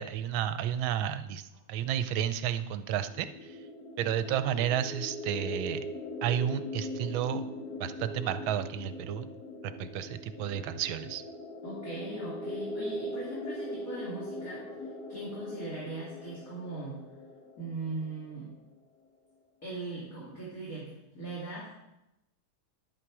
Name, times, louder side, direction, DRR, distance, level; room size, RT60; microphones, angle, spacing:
voice 1, 0.0-3.6 4.0-5.8 6.2-7.5 7.8-9.3 9.6-11.2, right 10 dB, 75° right, 11 dB, 1.3 m, -32 dB
sound 1, 2.9-18.6, left 1 dB, 60° left, 1.3 m, -41 dB
voice 2, 11.6-14.6 15.1-17.0 17.6-18.5 19.6-21.7, right 3 dB, 40° left, -6 dB, 3.0 m, -39 dB
10.5 x 8.7 x 4.8 m, 0.89 s
omnidirectional pair, 2.4 m